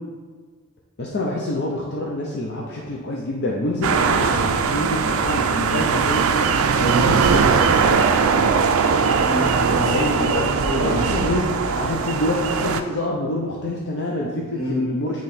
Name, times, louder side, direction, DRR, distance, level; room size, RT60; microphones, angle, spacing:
voice 1, 1.0-8.7 9.9-10.4 10.7-15.2, left 1 dB, 50° left, -2 dB, 0.6 m, -27 dB
sound 1, 3.8-12.8, right 5 dB, 70° right, 0.4 m, -20 dB
voice 2, 9.2-11.0 14.5-14.9, left 1 dB, 75° left, -3 dB, 1.5 m, -26 dB
8.6 x 3.1 x 4.2 m, 1.5 s
head